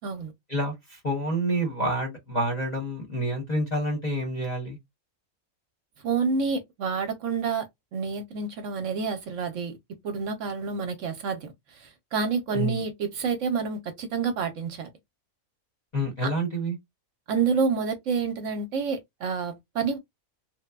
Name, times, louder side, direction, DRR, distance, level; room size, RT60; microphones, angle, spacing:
voice 1, 0.5-4.8 12.5-12.8 15.9-16.8, right 1 dB, 40° left, 0.7 m, -28 dB
voice 2, 6.0-7.6 7.9-9.8 10.0-11.5 11.8-14.9 16.2-16.3 17.3-20.0, right 5 dB, 70° right, 0.9 m, -28 dB
3.1 x 2.1 x 2.2 m
omnidirectional pair, 1.5 m